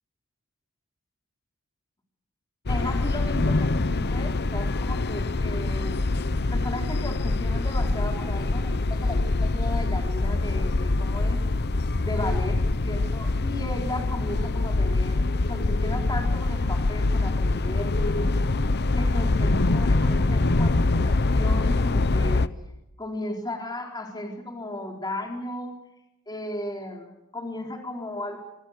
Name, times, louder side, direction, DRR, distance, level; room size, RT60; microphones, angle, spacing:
sound 1, 2.7-22.5, left 2 dB, 50° left, 0.9 m, -24 dB
voice 1, 2.7-6.0 6.5-11.4 12.0-18.3 18.9-22.5 23.0-25.8 26.3-28.4, left 1 dB, 20° left, 2 dB, 4.1 m, -35 dB
26.5 x 25.5 x 6.6 m, 0.90 s
head